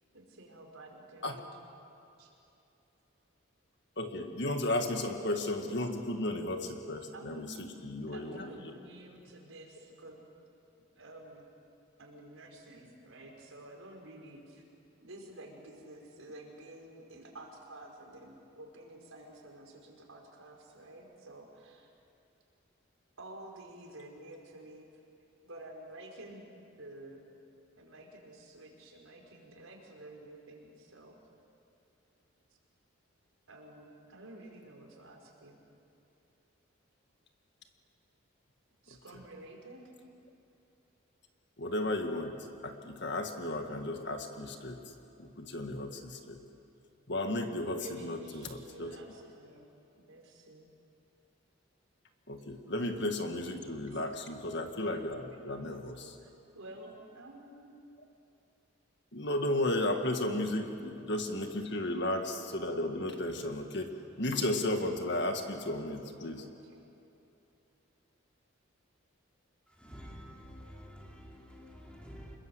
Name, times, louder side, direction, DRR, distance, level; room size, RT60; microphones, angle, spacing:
voice 1, 0.1-1.5 2.2-2.3 7.1-7.6 8.1-10.2 11.0-11.4 12.0-14.6 15.0-21.9 23.2-24.9 25.4-26.4 26.8-27.2 27.8-31.2 33.5-35.6 38.8-39.9 47.7-49.7 50.0-50.7 56.2-57.7 66.4-66.8, right 1 dB, 75° right, 4.7 m, -50 dB
voice 2, 4.0-8.5 41.6-42.4 42.6-44.8 45.2-46.4 47.1-49.0 52.3-56.2 59.1-63.9 64.2-66.5, left 1 dB, 55° left, 1.9 m, -34 dB
voice 3, 69.7-72.4, equal, 5° left, 3.1 m, -49 dB
27.5 x 21.5 x 7.9 m
head